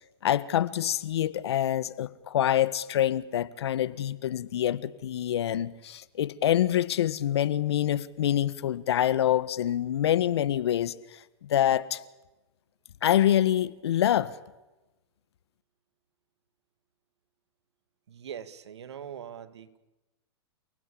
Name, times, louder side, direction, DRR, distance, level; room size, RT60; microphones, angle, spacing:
voice 1, 0.2-12.0 13.0-14.3, left 11 dB, 70° left, 1.6 m, -26 dB
voice 2, 18.1-19.8, right 9 dB, 75° right, 2.0 m, -42 dB
30.0 x 19.0 x 8.7 m
hypercardioid pair, 125°, 14 cm